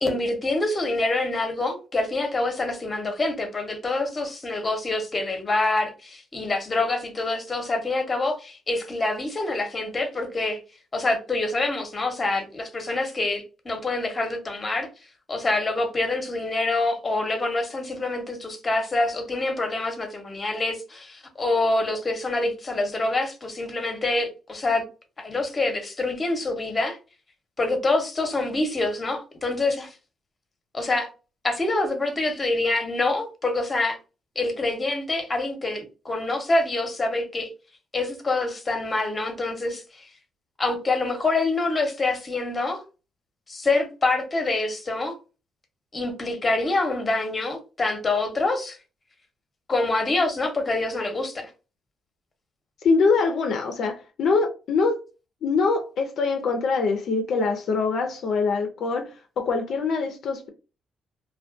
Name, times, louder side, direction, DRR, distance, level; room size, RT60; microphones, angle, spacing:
voice 1, 0.0-10.6 10.9-14.9 15.3-24.9 25.2-27.0 27.6-29.9 30.7-31.1 31.4-34.0 34.4-37.5 37.9-40.1 40.6-42.8 43.5-45.2 45.9-48.8 49.7-51.5, left 2 dB, 30° left, 0.8 m, -26 dB
voice 2, 52.8-55.0 55.4-60.5, left 4 dB, 65° left, 0.4 m, -24 dB
2.3 x 2.1 x 2.5 m
cardioid pair, 90°, 0 cm